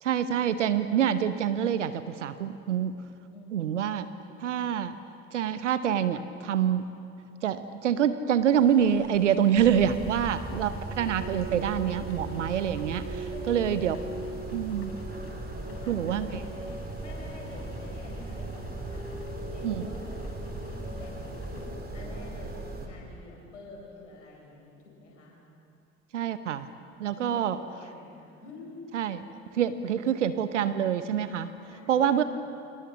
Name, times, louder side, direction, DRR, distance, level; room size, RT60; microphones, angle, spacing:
voice 1, 0.0-3.0 3.5-4.1 4.4-4.9 5.3-6.9 7.4-14.0 14.5-14.9 15.9-16.4 19.6-19.8 26.1-26.7 27.0-27.6 28.9-29.2 29.5-31.5 31.9-32.2, right 9 dB, 75° right, 12 dB, 0.9 m, -26 dB
voice 2, 3.3-3.7 4.0-4.8 10.0-10.4 13.3-13.7 15.6-25.4 27.1-28.9 29.8-30.2 31.7-32.3, left 2 dB, 80° left, -2 dB, 5.2 m, -48 dB
sound 1, 8.5-21.7, left 5 dB, 40° left, 3.9 m, -52 dB
sound 2, 9.6-22.9, right 2 dB, 25° right, 4.1 m, -37 dB
28.5 x 25.5 x 7.3 m, 2.5 s
figure-of-eight pair, 55°, 36 cm